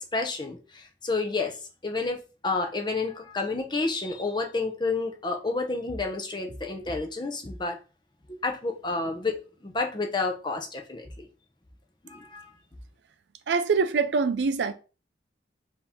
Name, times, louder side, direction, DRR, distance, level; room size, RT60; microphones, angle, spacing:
voice 1, 0.1-1.6 1.8-7.8 8.3-11.3 12.0-12.5, left 3 dB, 25° left, 0.7 m, -30 dB
voice 2, 13.5-14.7, right 5 dB, 75° right, 0.4 m, -24 dB
4.5 x 2.9 x 3.5 m
head